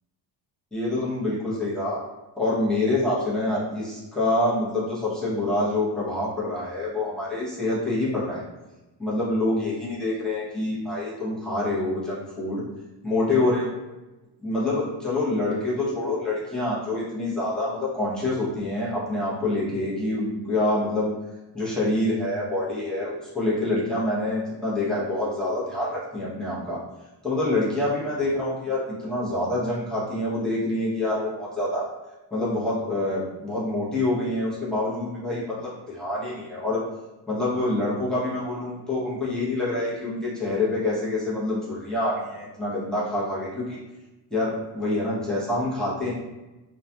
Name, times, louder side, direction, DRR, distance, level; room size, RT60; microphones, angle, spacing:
voice 1, 0.7-2.0 2.4-8.4 9.0-12.6 13.0-13.7 14.4-21.1 21.5-26.8 27.2-31.9 32.3-36.8 37.3-43.8 44.3-46.1, left 2 dB, ahead, -9 dB, 0.6 m, -26 dB
2.3 x 2.2 x 2.6 m, 1.1 s
cardioid pair, 155°, 45 cm